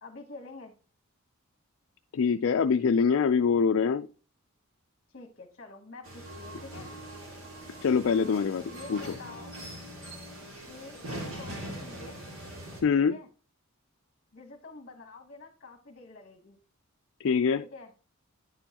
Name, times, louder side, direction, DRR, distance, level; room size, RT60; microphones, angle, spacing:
voice 1, 0.0-0.7 5.1-6.9 8.7-9.6 10.7-12.2 12.9-13.3 14.3-16.6 17.6-17.9, left 3 dB, 45° left, 4 dB, 1.1 m, -48 dB
voice 2, 2.1-4.1 7.8-9.0 12.8-13.2 17.2-17.6, left 6 dB, 65° left, 7 dB, 0.4 m, -24 dB
sound 1, 6.0-12.8, right 1 dB, 70° right, 2.6 m, -42 dB
9.6 x 6.9 x 2.9 m, 0.35 s
head